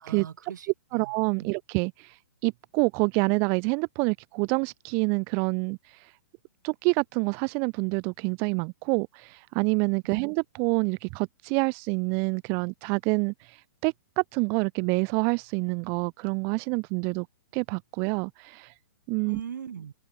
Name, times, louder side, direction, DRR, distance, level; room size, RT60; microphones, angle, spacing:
voice 1, 0.0-1.1 1.4-1.5 10.0-10.2 19.2-19.9, right 8 dB, 85° right, 3.2 m, -40 dB
voice 2, 0.9-2.1 2.4-5.8 6.6-13.6 13.8-17.3 17.5-18.7 19.1-19.4, right 36 dB, 25° right, 0.9 m, -27 dB
open air
hypercardioid pair, 170°, 10 cm